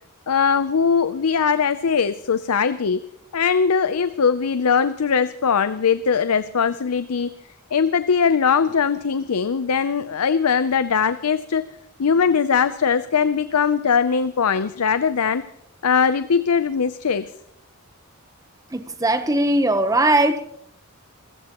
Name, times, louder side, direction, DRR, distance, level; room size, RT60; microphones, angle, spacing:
voice 1, 0.3-3.0 3.3-7.3 7.7-11.7 12.0-15.4 15.8-17.3, left 6 dB, 90° left, 0.6 m, -20 dB
voice 2, 18.7-20.4, right 1 dB, 15° right, 0.9 m, -19 dB
28.5 x 15.0 x 3.0 m
head